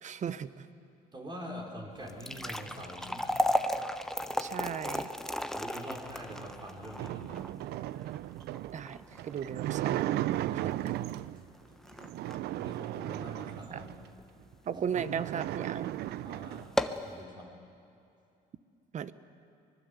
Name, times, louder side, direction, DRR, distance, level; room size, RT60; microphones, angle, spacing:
voice 1, 0.0-0.5 4.4-5.1 8.7-9.0 9.2-10.1 10.5-11.1 13.7-13.8 14.7-15.9 18.9-19.1, right 8 dB, 45° right, 14 dB, 0.9 m, -36 dB
voice 2, 1.1-3.3 5.6-7.4 11.7-11.8 12.5-13.9 14.7-14.8 16.2-16.7 17.0-17.5, equal, 25° right, 1 dB, 4.2 m, -44 dB
sound 1, 2.0-14.3 14.7-14.8 15.5-15.7 16.0-16.1 16.6-17.1, left 1 dB, 5° left, 1.0 m, -35 dB
sound 2, 6.3-11.4 12.0-14.1 14.5-14.6 14.8-16.7, right 14 dB, 75° right, 0.6 m, -36 dB
24.5 x 21.0 x 8.3 m, 2.6 s
cardioid pair, 110°, 17 cm